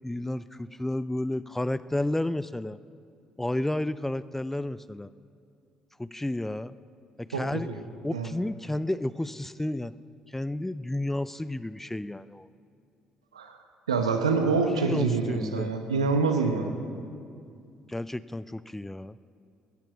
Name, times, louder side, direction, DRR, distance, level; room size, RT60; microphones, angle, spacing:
voice 1, 0.0-2.8 3.4-5.1 6.0-6.8 7.2-7.7 8.0-9.9 10.3-12.5 14.7-15.7 17.9-19.2, left 1 dB, 10° left, 16 dB, 0.4 m, -31 dB
voice 2, 7.3-7.8 8.1-8.3 13.3-13.6 13.9-16.7, right 4 dB, 85° right, 6 dB, 0.9 m, -26 dB
15.5 x 10.5 x 6.0 m, 2.4 s
figure-of-eight pair, 50°, 3 cm